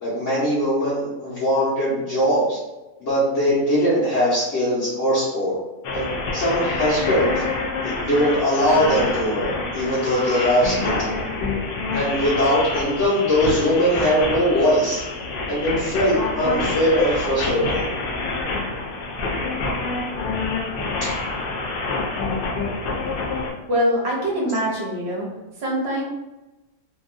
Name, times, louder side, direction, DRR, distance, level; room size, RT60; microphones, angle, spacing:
voice 1, 0.0-2.6 3.0-5.5 5.9-6.1 6.3-7.4 7.8-11.1 11.9-15.0 15.5-17.8, equal, 60° left, -10 dB, 1.2 m, -21 dB
sound 1, 5.8-23.5, left 3 dB, 80° left, 0.5 m, -27 dB
voice 2, 23.7-25.3 25.6-26.0, equal, 55° right, -3 dB, 0.9 m, -24 dB
2.9 x 2.5 x 2.5 m, 1.0 s
omnidirectional pair, 1.5 m